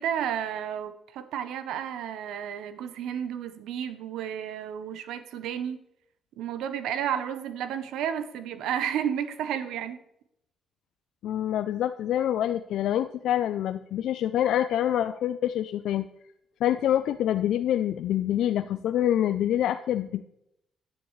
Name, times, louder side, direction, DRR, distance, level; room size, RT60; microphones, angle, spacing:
voice 1, 0.0-5.8 6.4-10.0, right 9 dB, 85° right, 11 dB, 0.8 m, -32 dB
voice 2, 11.2-16.1 16.6-20.2, left 11 dB, 80° left, 10 dB, 0.3 m, -26 dB
9.9 x 9.7 x 3.1 m, 0.79 s
cardioid pair, 90°, 0 cm